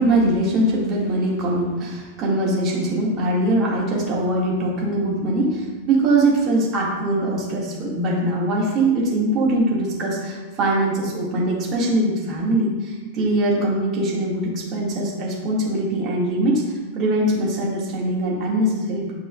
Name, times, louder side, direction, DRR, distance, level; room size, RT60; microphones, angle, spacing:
voice 1, 0.0-19.1, right 1 dB, 35° right, -4 dB, 1.9 m, -22 dB
9.0 x 4.4 x 2.4 m, 1.2 s
figure-of-eight pair, 90°, 0 cm